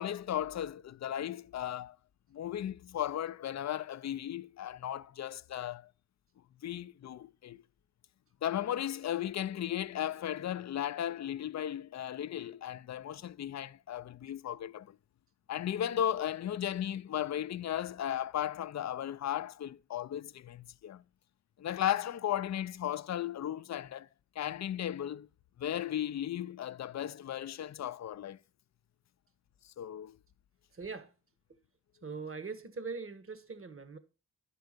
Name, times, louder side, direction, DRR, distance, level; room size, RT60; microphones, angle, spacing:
voice 1, 0.0-2.0 2.3-5.9 6.6-7.6 8.4-15.0 15.5-21.0 21.6-24.1 24.4-25.3 25.6-28.4 29.8-30.2, left 11 dB, 50° left, 0.5 m, -36 dB
voice 2, 30.7-31.1 32.0-34.0, right 4 dB, 35° right, 1.4 m, -41 dB
10.5 x 4.6 x 6.6 m
cardioid pair, 45°, 36 cm